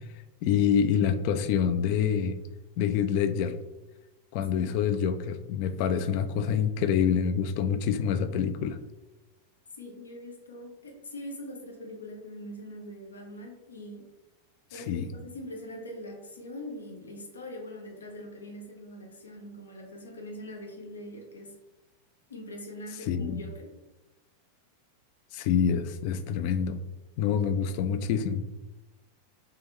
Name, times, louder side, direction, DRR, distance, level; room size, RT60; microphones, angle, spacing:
voice 1, 0.4-2.4 2.8-3.5 4.3-8.8 14.7-15.1 23.1-23.4 25.3-26.8 27.2-28.5, left 7 dB, 45° left, 10 dB, 0.3 m, -26 dB
voice 2, 9.8-14.1 14.7-21.6 22.3-23.8, left 1 dB, 75° left, 1 dB, 0.8 m, -42 dB
3.4 x 3.4 x 3.0 m, 1.0 s
figure-of-eight pair, 90°, 0 cm